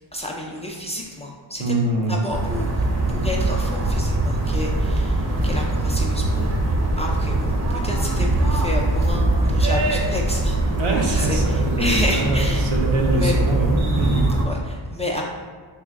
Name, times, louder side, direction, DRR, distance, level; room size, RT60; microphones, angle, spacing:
voice 1, 0.1-1.8 2.1-6.5 7.0-10.6 11.1-12.7 13.1-13.4 14.5-15.2, left 1 dB, 15° left, -2 dB, 0.3 m, -30 dB
voice 2, 1.6-2.2 10.8-14.4, right 1 dB, 85° right, -1 dB, 0.7 m, -24 dB
sound 1, 2.3-14.4, right 2 dB, 35° right, 0.6 m, -22 dB
3.6 x 2.2 x 3.4 m, 1.5 s
cardioid pair, 65°, 48 cm